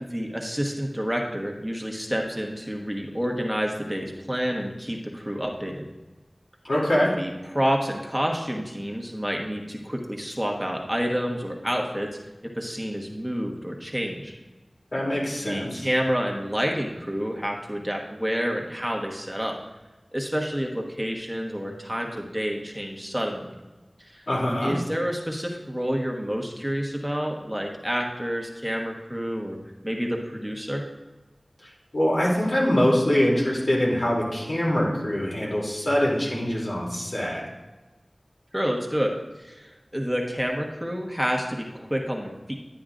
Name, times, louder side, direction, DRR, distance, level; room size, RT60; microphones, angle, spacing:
voice 1, 0.1-5.8 7.2-12.1 12.4-14.3 15.4-19.6 20.1-23.5 24.1-24.2 24.6-29.6 29.8-30.8 38.5-42.6, equal, 5° right, 0 dB, 1.3 m, -29 dB
voice 2, 6.6-7.1 14.9-15.9 24.3-24.7 31.9-37.4, left 1 dB, 80° left, -4 dB, 2.9 m, -23 dB
11.5 x 9.5 x 2.5 m, 1.1 s
wide cardioid pair, 50°, 0 cm